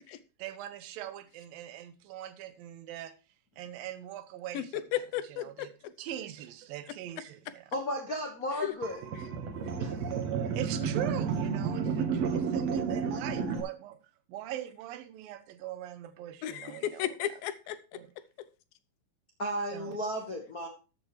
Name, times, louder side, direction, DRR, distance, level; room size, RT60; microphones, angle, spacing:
voice 1, 0.4-3.1 3.6-4.8 5.3-5.7 6.0-7.7 10.5-14.0 14.3-17.1 17.9-18.1 19.7-20.0, right 12 dB, 90° right, 2.6 m, -41 dB
voice 2, 4.5-5.7 8.6-8.7 16.4-17.8, left 12 dB, 85° left, 2.6 m, -34 dB
voice 3, 7.7-9.0 9.8-9.9 19.4-20.7, equal, 65° left, 0.8 m, -34 dB
sound 1, 8.8-13.6, right 6 dB, 60° right, 2.0 m, -31 dB
13.5 x 8.2 x 3.1 m
omnidirectional pair, 4.1 m